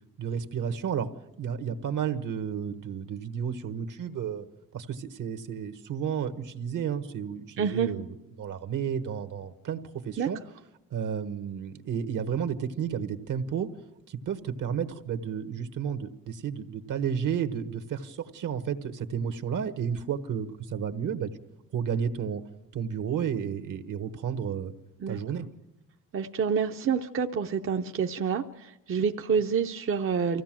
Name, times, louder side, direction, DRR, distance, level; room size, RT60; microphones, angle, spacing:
voice 1, 0.2-1.1 1.4-4.4 4.7-8.1 8.4-9.8 10.0-10.4 10.9-13.7 14.1-21.3 21.7-22.4 22.7-24.7 25.1-25.5, right 7 dB, 65° right, 8 dB, 1.4 m, -32 dB
voice 2, 7.6-7.9 10.2-10.3 25.0-25.2 26.1-30.4, right 6 dB, 40° right, 5 dB, 0.7 m, -28 dB
25.0 x 16.0 x 7.6 m, 0.98 s
cardioid pair, 130°, 34 cm